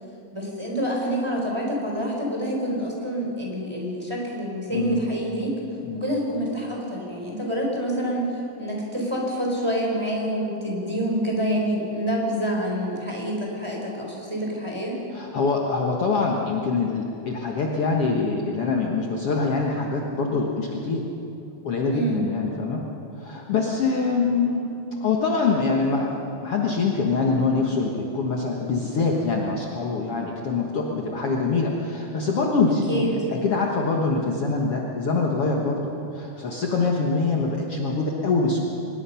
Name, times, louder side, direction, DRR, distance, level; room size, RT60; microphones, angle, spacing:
voice 1, 0.3-5.6 5.9-15.0 21.9-22.3 32.7-33.1, right 1 dB, 10° right, -2 dB, 4.2 m, -27 dB
voice 2, 4.7-5.1 5.8-6.0 15.1-21.0 21.6-22.8 23.2-24.7 25.0-33.1 33.4-38.6, left 4 dB, 55° left, -1 dB, 2.2 m, -24 dB
24.5 x 20.5 x 5.8 m, 2.8 s
omnidirectional pair, 3.5 m